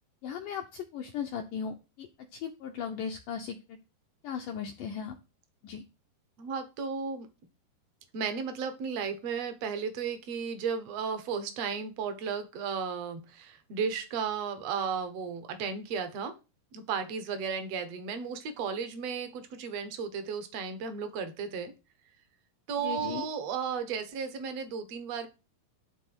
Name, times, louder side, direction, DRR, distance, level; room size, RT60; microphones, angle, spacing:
voice 1, 0.2-2.1 2.3-3.6 4.2-5.2 5.6-5.8 22.8-23.2, left 7 dB, 75° left, 4 dB, 1.9 m, -37 dB
voice 2, 6.4-7.3 8.1-16.3 16.7-21.7 22.7-25.3, right 6 dB, 60° right, 9 dB, 1.7 m, -34 dB
12.0 x 4.2 x 7.9 m, 0.29 s
omnidirectional pair, 5.0 m